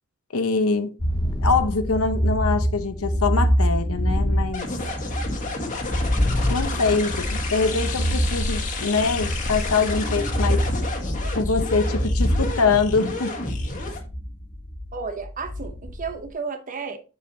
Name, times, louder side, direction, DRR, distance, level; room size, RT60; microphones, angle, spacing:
voice 1, 0.3-0.9 1.4-4.7 6.5-10.7 11.3-13.4, left 4 dB, 70° left, 0.9 m, -24 dB
sound 1, 1.0-16.3, equal, 20° left, 0.7 m, -25 dB
sound 2, 4.5-14.0, left 2 dB, 35° left, 1.6 m, -31 dB
voice 2, 14.9-17.0, right 5 dB, 35° right, 0.8 m, -32 dB
7.3 x 6.9 x 2.8 m
head